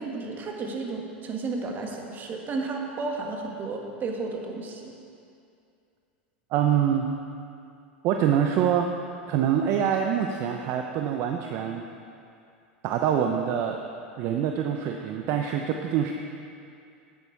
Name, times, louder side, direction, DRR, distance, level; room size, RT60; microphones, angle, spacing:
voice 1, 0.0-4.9, right 3 dB, 35° right, 1 dB, 1.7 m, -33 dB
voice 2, 6.5-7.1 8.0-8.9 9.3-11.9 12.8-13.8 14.2-16.1, right 9 dB, 50° right, 3 dB, 0.7 m, -25 dB
9.8 x 9.0 x 4.7 m, 2.5 s
hypercardioid pair, 95°, 6 cm